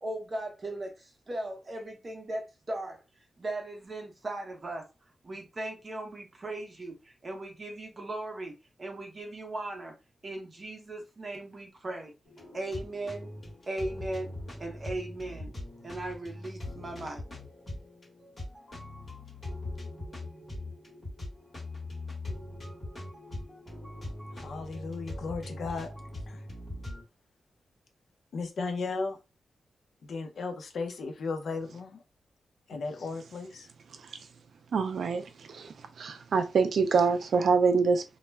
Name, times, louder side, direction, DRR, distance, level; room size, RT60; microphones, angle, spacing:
voice 1, 0.0-3.0 3.4-4.9 5.2-8.5 8.8-10.0 10.2-12.1 12.5-13.3 13.7-14.3 14.6-15.5 15.8-17.2, right 2 dB, 30° right, 0.7 m, -38 dB
sound 1, 12.3-27.0, left 1 dB, 25° left, 1.1 m, -41 dB
voice 2, 24.3-25.9 26.3-26.4 28.3-29.2 30.0-32.0 32.7-33.7, left 4 dB, 65° left, 0.5 m, -35 dB
voice 3, 34.7-38.0, right 5 dB, 65° right, 0.3 m, -25 dB
2.2 x 2.1 x 3.2 m
wide cardioid pair, 180°, 0 cm